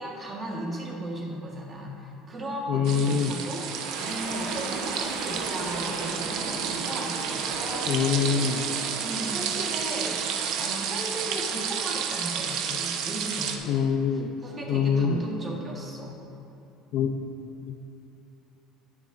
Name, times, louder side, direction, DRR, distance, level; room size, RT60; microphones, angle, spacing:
voice 1, 0.0-8.0 9.0-10.2 10.6-13.8 14.1-16.2, right 1 dB, 20° right, -2 dB, 1.7 m, -36 dB
voice 2, 2.7-3.4 7.9-8.6 13.7-14.3 14.7-15.2 16.9-17.2 17.7-17.9, left 7 dB, 50° left, 5 dB, 0.6 m, -24 dB
sound 1, 2.8-13.6, right 7 dB, 60° right, 0.8 m, -31 dB
sound 2, 3.2-14.2, right 3 dB, 85° right, 1.4 m, -37 dB
19.0 x 7.2 x 2.7 m, 2.9 s
cardioid pair, 155°, 0 cm